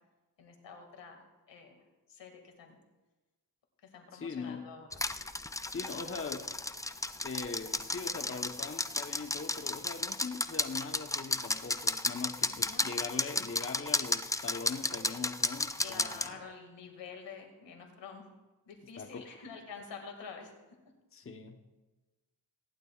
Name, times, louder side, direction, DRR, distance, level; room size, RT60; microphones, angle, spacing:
voice 1, 0.4-1.7 2.1-2.8 3.9-5.0 5.8-6.2 12.4-12.9 15.8-18.2 18.7-20.5, left 5 dB, 85° left, 3 dB, 2.2 m, -48 dB
voice 2, 4.1-4.7 5.7-6.5 7.2-16.4 19.0-19.3 21.1-21.6, left 4 dB, 30° left, 5 dB, 1.0 m, -41 dB
sound 1, 4.9-16.3, left 2 dB, 10° left, 0.4 m, -34 dB
18.5 x 11.5 x 2.4 m, 1.1 s
cardioid pair, 80°, 42 cm